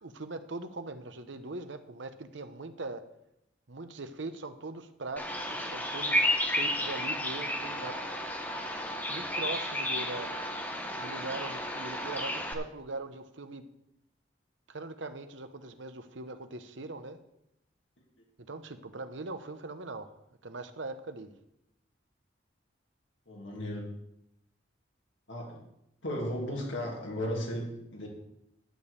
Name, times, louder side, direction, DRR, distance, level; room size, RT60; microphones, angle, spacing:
voice 1, 0.0-3.1 3.7-8.0 9.1-10.3 11.0-13.7 14.7-17.2 18.4-20.1 20.4-21.3, right 2 dB, 75° right, 10 dB, 0.9 m, -41 dB
Bird vocalization bird call bird song, 5.2-12.5, left 1 dB, 10° left, 1.1 m, -32 dB
voice 2, 23.3-23.9 25.3-25.6 26.0-28.1, equal, 85° left, -1 dB, 2.7 m, -35 dB
11.5 x 5.3 x 8.2 m, 0.81 s
head